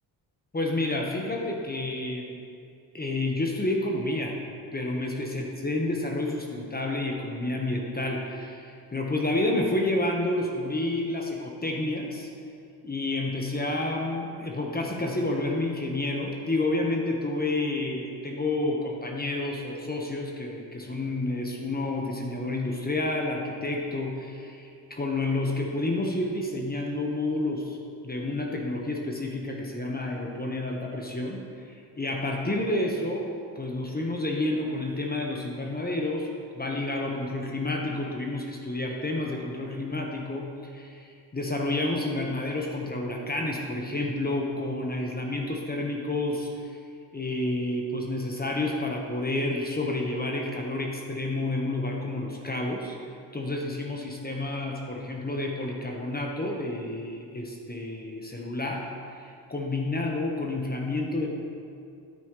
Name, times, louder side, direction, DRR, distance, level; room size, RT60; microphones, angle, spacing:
voice 1, 0.5-2.4 2.9-4.4 4.7-12.5 12.8-27.8 28.0-33.3 33.5-36.3 36.5-46.8 47.1-53.0 53.3-61.3, left 2 dB, 20° left, 0 dB, 1.4 m, -30 dB
9.3 x 9.0 x 3.3 m, 2.4 s
supercardioid pair, 60°, 44 cm